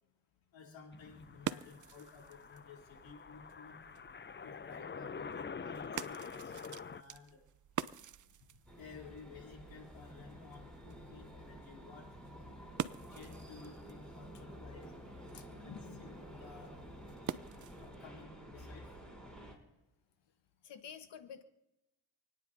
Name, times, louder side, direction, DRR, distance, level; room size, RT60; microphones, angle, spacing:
voice 1, 0.5-3.8 4.4-7.4 8.4-12.1 13.1-16.8 17.8-19.0, left 5 dB, 85° left, -1 dB, 3.5 m, -55 dB
sound 1, 0.9-7.0, left 5 dB, 25° left, 0.7 m, -46 dB
sound 2, 0.9-18.0, right 9 dB, 45° right, 0.7 m, -47 dB
sound 3, 8.7-19.6, equal, ahead, 5.4 m, -51 dB
voice 2, 15.3-16.1 20.6-21.4, left 8 dB, 70° left, 9 dB, 1.5 m, -50 dB
28.5 x 9.9 x 2.8 m, 0.94 s
supercardioid pair, 50°, 44 cm